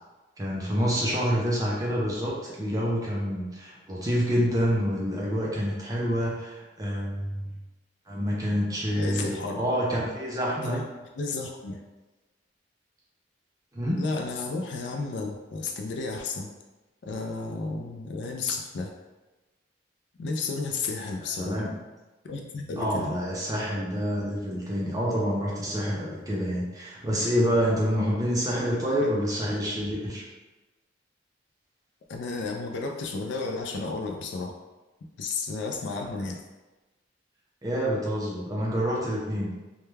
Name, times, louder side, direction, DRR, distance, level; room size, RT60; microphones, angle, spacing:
voice 1, 0.4-7.5 8.1-10.8 13.7-14.0 21.4-21.7 22.8-30.2 37.6-39.5, equal, 20° right, -4 dB, 0.5 m, -27 dB
voice 2, 9.0-9.6 10.6-10.8 11.2-11.8 14.0-16.5 17.0-18.9 20.2-21.7 22.2-23.1 29.0-29.1 32.1-34.6 35.2-36.4, left 3 dB, 65° left, 2 dB, 0.3 m, -32 dB
2.2 x 2.2 x 3.1 m, 1.1 s
head